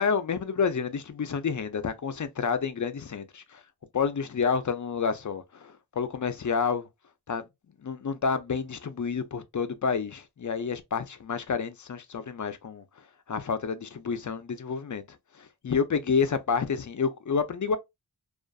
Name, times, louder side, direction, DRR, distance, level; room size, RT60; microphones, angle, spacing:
voice 1, 0.0-3.6 3.9-6.9 7.3-7.5 7.8-12.8 13.3-15.0 15.6-17.8, left 5 dB, 45° left, 0.5 m, -29 dB
2.5 x 2.4 x 2.2 m
wide cardioid pair, 55°, 42 cm